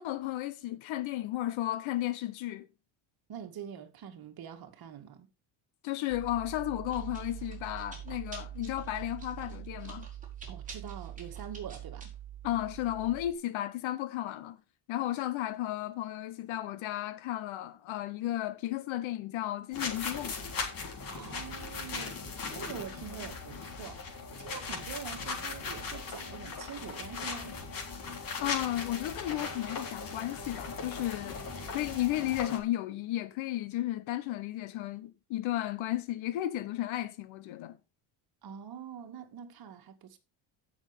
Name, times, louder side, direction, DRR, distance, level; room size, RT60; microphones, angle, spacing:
voice 1, 0.0-2.7 5.8-10.1 12.4-14.6 14.9-20.4 28.4-31.4 31.7-37.8, left 14 dB, 70° left, 1.1 m, -34 dB
voice 2, 3.3-5.3 10.5-12.1 21.1-22.2 22.5-24.0 24.4-27.6 38.4-40.2, right 8 dB, 50° right, 2.2 m, -44 dB
Chewing mastication, 6.1-13.3, right 10 dB, 15° right, 5.6 m, -44 dB
sound 1, 19.7-32.6, left 4 dB, 45° left, 3.6 m, -39 dB
16.5 x 6.6 x 3.6 m
cardioid pair, 130°, 48 cm